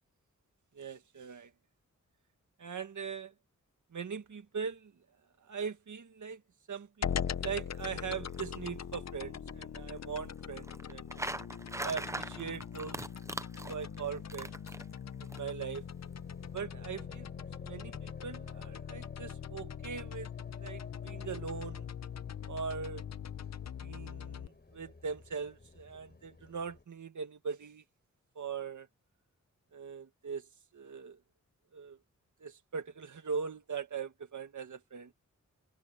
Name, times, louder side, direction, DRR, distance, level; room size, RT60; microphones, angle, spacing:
voice 1, 0.7-1.5 2.6-3.3 3.9-5.0 5.4-6.4 6.7-11.1 11.8-13.0 13.5-14.6 15.2-15.8 16.5-17.3 17.6-20.3 20.6-21.9 22.5-23.0 23.8-27.8 28.4-28.9 29.7-31.2 31.7-32.0 32.4-35.1, right 6 dB, 75° right, 1.8 m, -41 dB
sound 1, 7.0-24.5, left 8 dB, 60° left, 0.7 m, -41 dB
sound 2, 7.1-15.4, right 1 dB, 10° right, 0.6 m, -44 dB
sound 3, 15.8-26.8, left 3 dB, 35° left, 5.7 m, -55 dB
wide cardioid pair, 140°, 30 cm